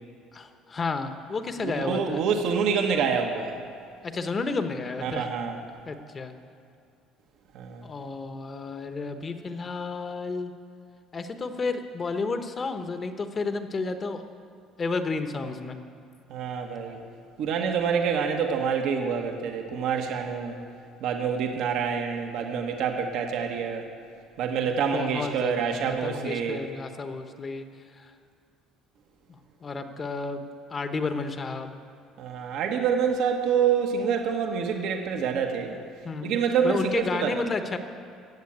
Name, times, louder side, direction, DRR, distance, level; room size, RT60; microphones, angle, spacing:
voice 1, 0.3-2.2 4.0-5.3 5.8-6.3 7.8-10.5 11.1-14.2 14.8-15.8 24.7-27.7 28.0-28.1 29.3-30.4 30.7-31.8 36.0-36.3 36.6-37.8, left 4 dB, 30° left, 8 dB, 1.0 m, -31 dB
voice 2, 1.6-3.5 5.0-5.6 7.5-7.9 16.3-17.0 17.4-20.6 21.0-23.9 24.4-26.6 32.2-35.8 36.2-37.3, right 6 dB, 70° right, 3 dB, 1.3 m, -27 dB
14.5 x 7.7 x 8.7 m, 2.4 s
cardioid pair, 110°, 0 cm